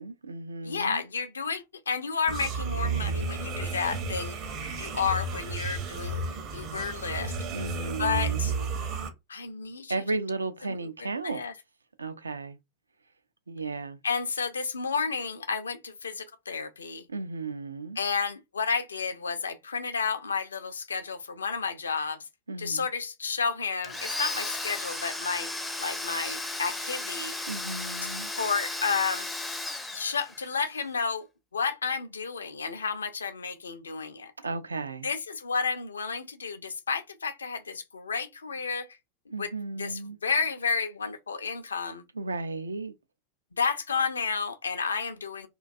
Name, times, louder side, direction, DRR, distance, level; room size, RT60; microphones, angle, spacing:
voice 1, 0.0-1.0 7.5-8.5 9.9-11.4 12.0-12.6 13.5-14.0 17.1-18.0 22.5-22.9 27.5-28.3 34.4-35.1 39.3-40.2 42.1-42.9, right 3 dB, 75° right, 0.3 m, -34 dB
voice 2, 0.6-4.4 4.8-6.3 6.5-7.3 8.0-8.5 9.3-9.9 10.7-11.5 14.0-17.0 18.0-22.2 22.6-25.5 25.8-27.3 28.4-29.3 29.9-31.2 31.5-34.3 35.0-38.9 39.3-42.0 43.6-45.5, left 5 dB, 70° left, 0.4 m, -31 dB
sound 1, 2.3-9.1, right 4 dB, 35° right, 0.6 m, -32 dB
Domestic sounds home sounds, 23.8-30.6, left 2 dB, 10° left, 0.4 m, -35 dB
2.5 x 2.2 x 2.5 m
figure-of-eight pair, 90°, 0 cm